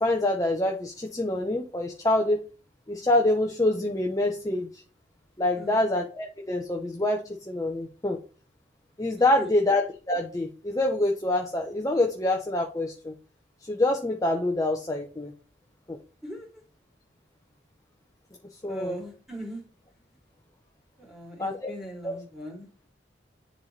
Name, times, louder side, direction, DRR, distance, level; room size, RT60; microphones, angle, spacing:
voice 1, 0.0-2.4 2.9-4.7 5.4-8.2 9.0-13.1 13.7-15.3 15.9-16.0 18.6-18.9 21.4-21.6 22.0-22.2, left 1 dB, 20° left, 2 dB, 0.8 m, -26 dB
voice 2, 9.2-9.5 16.2-16.5 18.6-19.6 21.0-22.9, right 1 dB, ahead, -3 dB, 3.0 m, -39 dB
10.5 x 4.0 x 3.3 m, 0.37 s
head